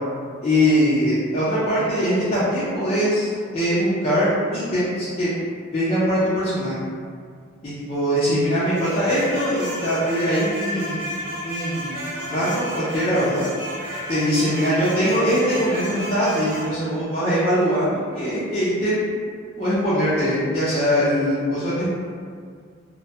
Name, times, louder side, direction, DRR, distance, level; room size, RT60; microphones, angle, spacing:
voice 1, 0.4-5.3 5.7-6.9 7.6-11.0 11.4-13.4 14.1-19.0 19.6-21.9, equal, 30° left, -11 dB, 0.4 m, -22 dB
sound 1, 8.7-16.7, equal, 55° right, 0.6 m, -32 dB
2.1 x 2.1 x 2.7 m, 2.1 s
head